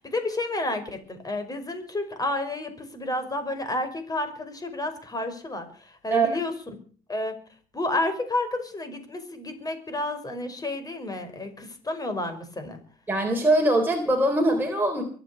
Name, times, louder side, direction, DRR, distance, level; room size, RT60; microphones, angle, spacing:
voice 1, 0.0-5.7 6.0-6.5 7.1-7.3 7.7-12.8, left 2 dB, 20° left, 8 dB, 5.3 m, -30 dB
voice 2, 13.1-15.0, right 1 dB, 10° right, 1 dB, 4.0 m, -22 dB
23.5 x 8.2 x 6.9 m, 0.43 s
cardioid pair, 110°, 17 cm